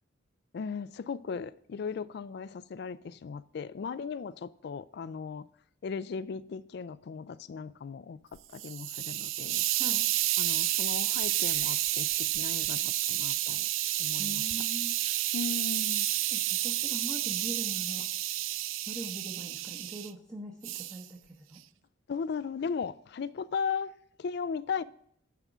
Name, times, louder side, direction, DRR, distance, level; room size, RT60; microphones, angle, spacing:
voice 1, 0.5-5.5 5.8-8.2 8.5-9.6 10.4-13.7 14.0-14.4 15.3-16.1 22.1-23.9 24.2-24.8, left 6 dB, 55° left, 16 dB, 0.3 m, -37 dB
Hiss, 8.3-20.1 20.6-21.0, right 15 dB, 85° right, 0.4 m, -30 dB
voice 2, 14.2-15.0 16.3-18.1 18.9-21.6, right 1 dB, 15° right, -3 dB, 0.8 m, -42 dB
9.1 x 3.7 x 7.1 m, 0.67 s
head